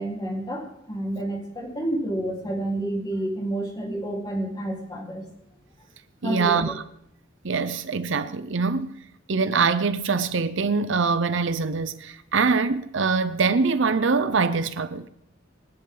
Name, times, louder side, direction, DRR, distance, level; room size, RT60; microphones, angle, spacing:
voice 1, 0.0-5.2 6.2-6.7, right 1 dB, 20° left, 4.2 m, -29 dB
voice 2, 6.2-6.8 7.4-8.9 9.3-15.1, right 4 dB, 65° right, 0.8 m, -23 dB
27.0 x 10.5 x 4.0 m
head